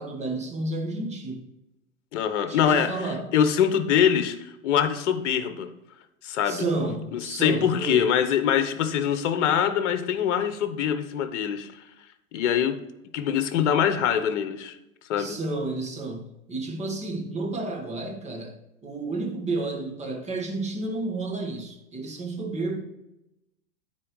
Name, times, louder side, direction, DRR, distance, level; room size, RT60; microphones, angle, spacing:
voice 1, 0.0-1.5 2.5-3.3 6.4-8.1 15.2-18.6 18.8-22.8, right 2 dB, 15° right, 1.7 m, -31 dB
voice 2, 2.1-5.7 6.2-6.6 7.1-11.7 12.3-12.8 13.1-14.7 15.1-15.4, left 8 dB, 55° left, 1.1 m, -24 dB
13.5 x 4.6 x 3.1 m
figure-of-eight pair, 100°, 42 cm